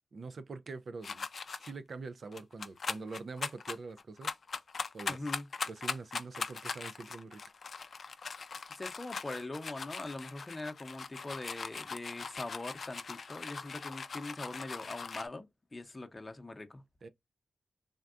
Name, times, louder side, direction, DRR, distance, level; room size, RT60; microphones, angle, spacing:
voice 1, 0.1-1.3 1.6-4.3 4.9-5.3 5.7-7.4 17.0-17.1, right 3 dB, 65° right, 0.3 m, -44 dB
sound 1, 1.0-1.7 2.3-15.3, left 5 dB, 70° left, 0.3 m, -40 dB
voice 2, 5.1-5.5 8.6-16.8, left 2 dB, 30° left, 0.6 m, -42 dB
3.5 x 2.2 x 2.4 m
cardioid pair, 50°, 0 cm